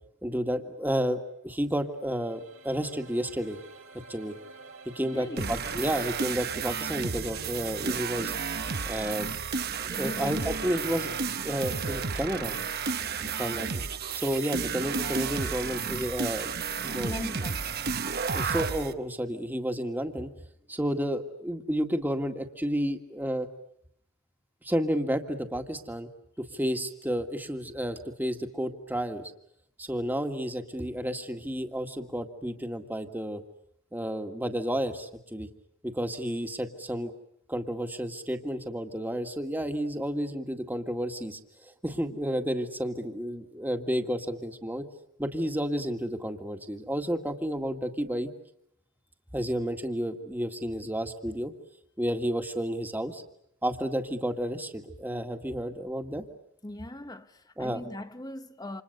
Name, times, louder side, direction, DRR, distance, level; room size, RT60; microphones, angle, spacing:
voice 1, 0.2-3.6 4.1-4.4 5.0-8.3 8.8-9.3 9.8-11.2 11.4-12.6 13.4-13.8 14.1-16.5 16.8-17.1 18.3-20.3 20.7-23.5 24.6-26.1 26.4-29.3 29.8-33.4 33.9-35.5 35.8-37.1 37.5-44.9 45.2-48.3 49.3-51.5 52.0-53.2 53.6-56.2 57.6-57.8, equal, 10° right, 1.9 m, -31 dB
sound 1, 1.6-18.7, right 4 dB, 75° right, 3.0 m, -51 dB
voice 2, 5.0-5.7 10.0-10.5 13.2-13.6 17.0-18.0 56.6-58.8, left 1 dB, 20° left, 1.1 m, -39 dB
sound 2, 5.4-18.9, right 5 dB, 50° right, 1.3 m, -32 dB
29.0 x 27.5 x 6.8 m
head